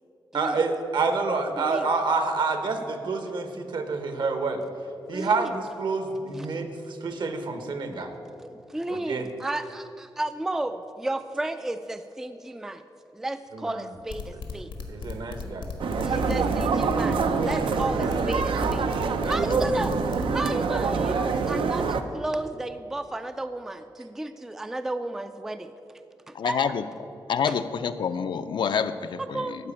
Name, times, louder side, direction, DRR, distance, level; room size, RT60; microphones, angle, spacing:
voice 1, 0.3-4.6 5.1-8.1 8.9-9.3 13.5-13.8 14.9-15.7 19.2-20.0, right 4 dB, 65° right, 7 dB, 1.1 m, -28 dB
voice 2, 5.1-5.5 6.3-6.5 8.4-12.8 13.1-14.7 16.0-18.9 19.2-19.9 20.3-25.7 26.3-26.8 27.5-27.6 29.2-29.6, right 2 dB, 5° right, 9 dB, 0.3 m, -33 dB
sound 1, 14.1-20.3, left 4 dB, 90° left, 1.5 m, -36 dB
sound 2, 15.8-22.0, right 5 dB, 90° right, 0.6 m, -26 dB
voice 3, 26.3-26.8 27.3-29.4, left 7 dB, 65° left, 10 dB, 0.5 m, -27 dB
12.0 x 5.0 x 8.6 m, 2.9 s
wide cardioid pair, 145°, 8 cm